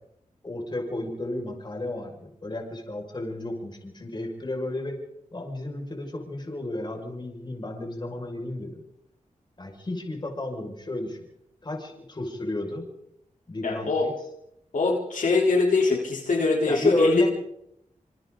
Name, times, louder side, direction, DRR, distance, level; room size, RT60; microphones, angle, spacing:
voice 1, 0.4-4.9 5.3-8.8 9.6-11.3 11.6-12.8 13.5-14.1 16.7-17.3, left 1 dB, 35° left, 1 dB, 6.2 m, -32 dB
voice 2, 13.6-14.1 14.7-17.3, left 3 dB, 70° left, -1 dB, 4.0 m, -23 dB
28.0 x 26.5 x 4.1 m, 0.79 s
wide cardioid pair, 105°, 14 cm